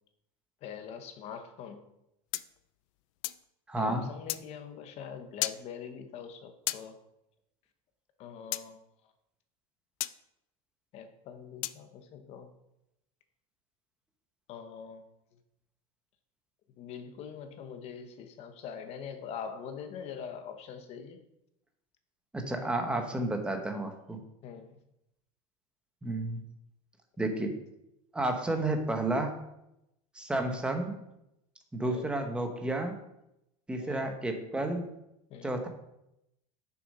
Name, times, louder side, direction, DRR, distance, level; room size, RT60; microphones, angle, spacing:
voice 1, 0.6-1.8 3.8-7.0 8.2-8.8 10.9-12.5 14.5-15.0 16.8-21.2 24.4-24.7 30.5-30.6 31.8-32.1 33.8-34.3 35.3-35.6, left 7 dB, 40° left, 7 dB, 1.1 m, -43 dB
sound 1, 2.3-3.5 4.3-4.4 5.4-5.6 6.7-6.8 8.5-8.7 10.0-10.2 11.6-11.8, left 17 dB, 70° left, 0.5 m, -34 dB
voice 2, 3.7-4.0 22.3-24.2 26.0-26.4 27.2-27.5 28.1-29.3 30.2-31.0 31.7-32.9 33.7-34.9 35.4-35.7, right 2 dB, 5° right, 4 dB, 1.0 m, -31 dB
6.9 x 6.5 x 5.5 m, 0.85 s
cardioid pair, 165°, 17 cm